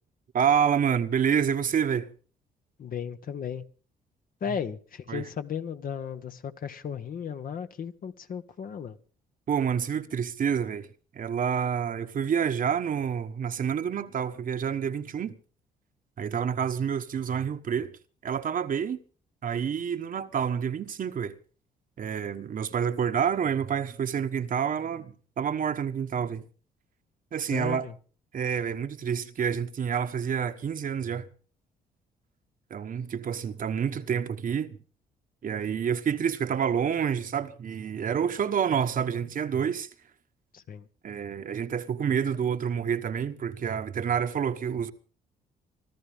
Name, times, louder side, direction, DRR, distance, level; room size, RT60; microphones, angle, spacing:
voice 1, 0.3-2.1 5.1-5.2 9.5-10.9 11.1-15.3 16.2-17.9 18.2-19.0 19.4-21.4 22.0-26.4 27.3-27.9 28.3-31.3 32.7-34.8 35.4-39.9 41.0-44.9, right 7 dB, 50° right, 1.3 m, -28 dB
voice 2, 2.8-3.7 4.4-9.0 27.5-28.0 40.5-40.9, left 7 dB, 55° left, 1.3 m, -35 dB
25.5 x 13.5 x 3.6 m
supercardioid pair, 75°, 17 cm